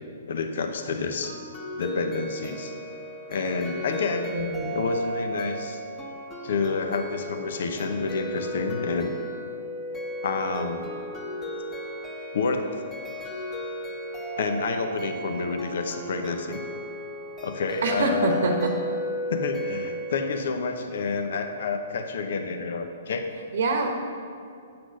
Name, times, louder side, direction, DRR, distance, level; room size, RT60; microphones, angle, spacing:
voice 1, 0.3-1.3 1.8-2.7 3.3-4.3 4.7-5.8 6.4-9.1 10.2-10.9 12.3-12.7 14.4-16.6 17.4-18.5 19.3-23.3, left 4 dB, 65° left, 6 dB, 0.8 m, -29 dB
sound 1, 1.2-20.4, equal, 20° left, 1.3 m, -35 dB
voice 2, 4.3-4.8 17.8-18.7 23.5-23.9, right 2 dB, 75° right, 3 dB, 1.0 m, -25 dB
8.7 x 6.0 x 6.3 m, 2.4 s
hypercardioid pair, 135°, 0 cm